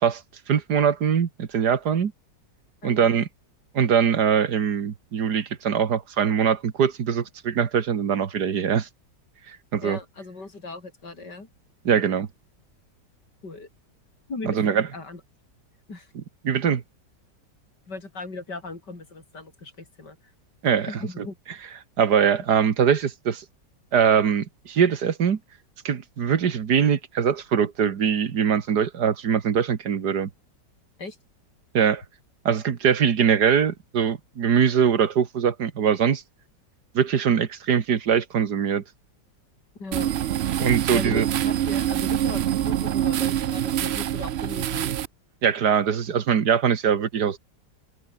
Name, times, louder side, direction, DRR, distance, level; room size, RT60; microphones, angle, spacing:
voice 1, 0.5-2.1 2.8-3.3 3.7-8.9 9.5-10.0 11.9-12.3 14.5-14.9 16.4-16.8 20.6-20.9 21.2-21.3 22.0-23.4 23.9-25.4 25.8-30.3 31.7-32.0 32.5-36.2 36.9-38.8 40.6-41.3 45.4-47.4, right 7 dB, 65° right, 2.1 m, -22 dB
voice 2, 2.8-3.1 9.8-11.5 13.4-13.7 14.3-15.2 15.9-16.1 17.9-20.2 20.9-21.4 31.0-31.2 39.8-40.2 40.9-45.0, left 3 dB, 70° left, 5.7 m, -38 dB
sound 1, 39.9-45.1, right 11 dB, 90° right, 0.5 m, -25 dB
omnidirectional pair, 1.9 m